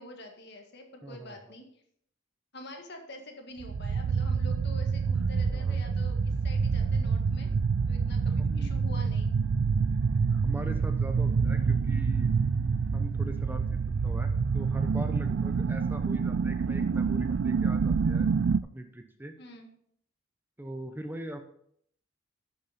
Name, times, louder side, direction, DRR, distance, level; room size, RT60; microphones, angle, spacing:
voice 1, 0.0-1.6 2.5-7.5 7.9-9.3 19.4-19.7, left 1 dB, 55° left, 4 dB, 1.8 m, -46 dB
voice 2, 1.0-1.6 5.5-5.8 8.4-8.8 10.3-12.3 12.9-18.3 18.7-19.3 20.6-21.4, right 1 dB, 10° right, 6 dB, 0.7 m, -41 dB
sound 1, 3.6-18.6, right 5 dB, 65° right, 0.4 m, -27 dB
11.5 x 6.6 x 4.2 m, 0.66 s
head